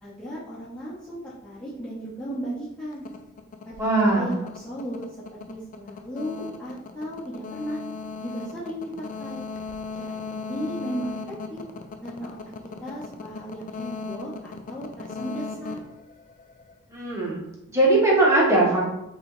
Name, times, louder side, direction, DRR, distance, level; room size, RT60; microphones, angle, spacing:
voice 1, 0.0-3.0 3.6-5.0 5.3-7.8 8.2-9.4 10.0-11.6 12.0-12.4 12.8-15.8, equal, 5° left, -12 dB, 0.9 m, -35 dB
sound 1, 2.9-16.8, left 4 dB, 40° left, 0.3 m, -37 dB
voice 2, 3.8-4.3 16.9-17.4 17.7-18.8, right 2 dB, 15° right, -5 dB, 1.1 m, -20 dB
3.2 x 3.0 x 3.9 m, 0.88 s
head